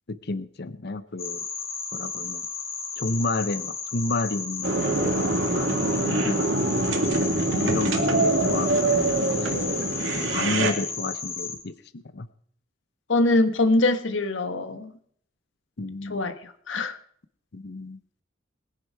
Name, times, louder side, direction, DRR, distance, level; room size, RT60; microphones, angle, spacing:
voice 1, 0.1-1.5 1.9-2.5 3.0-6.6 7.5-9.7 10.3-12.3 15.8-16.3 17.5-18.0, left 2 dB, 55° left, 14 dB, 0.8 m, -31 dB
sound 1, 1.2-11.6, left 5 dB, 35° left, 2.9 m, -34 dB
sound 2, 4.6-10.7, right 2 dB, 80° right, 2.1 m, -24 dB
voice 2, 13.1-14.9 16.1-17.0, left 2 dB, 75° left, 9 dB, 1.5 m, -23 dB
20.5 x 10.0 x 4.8 m, 0.62 s
head